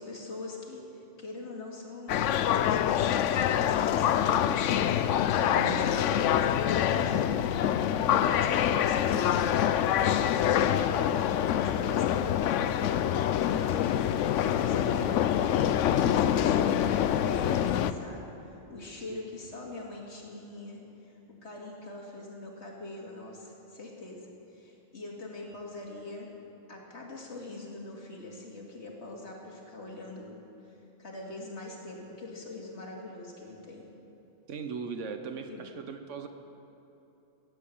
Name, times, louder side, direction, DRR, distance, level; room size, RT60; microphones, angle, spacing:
voice 1, 0.0-2.2 2.4-4.6 5.5-9.7 10.3-11.2 11.5-15.8 16.1-26.3 26.7-30.4 31.0-33.8 35.5-35.7, left 2 dB, 70° left, -1 dB, 2.6 m, -43 dB
sound 1, 2.1-17.9, left 10 dB, 85° left, 0.9 m, -26 dB
voice 2, 5.3-5.9 19.1-19.2 34.5-36.3, right 4 dB, 90° right, 7 dB, 1.3 m, -38 dB
16.0 x 8.3 x 8.5 m, 3.0 s
omnidirectional pair, 1.2 m